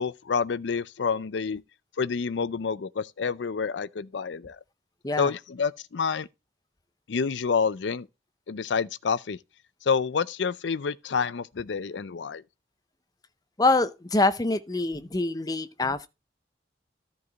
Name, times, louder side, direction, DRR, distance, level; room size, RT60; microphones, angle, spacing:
voice 1, 0.0-1.6 2.0-4.6 5.2-6.3 7.1-8.1 8.5-9.4 9.9-12.4, left 5 dB, 85° left, 0.5 m, -28 dB
voice 2, 13.6-16.1, left 2 dB, 20° left, 0.7 m, -25 dB
13.5 x 4.8 x 4.0 m
head